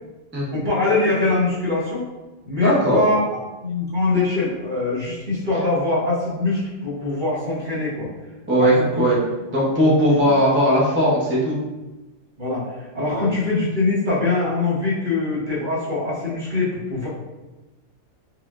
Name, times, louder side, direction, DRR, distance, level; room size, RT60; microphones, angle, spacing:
voice 1, 0.5-2.1 2.4-3.2 3.6-8.1 8.6-9.0 10.2-10.3 12.4-12.6 12.9-17.1, left 3 dB, 40° right, -8 dB, 1.3 m, -23 dB
voice 2, 2.6-3.0 8.5-9.2 9.5-11.6 13.1-13.3, equal, 10° right, -7 dB, 0.6 m, -18 dB
4.9 x 2.5 x 2.4 m, 1.1 s
omnidirectional pair, 1.3 m